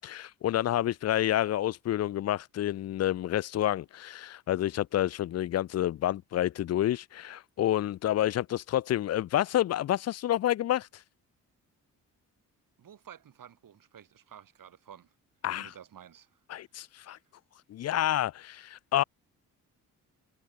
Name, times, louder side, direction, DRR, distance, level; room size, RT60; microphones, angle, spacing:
voice 1, 0.0-10.9 15.4-15.7 16.5-17.2 17.7-19.0, left 12 dB, 45° left, 0.4 m, -29 dB
voice 2, 12.8-15.1 15.6-16.4, right 9 dB, 60° right, 3.8 m, -51 dB
supercardioid pair, 60°, 37 cm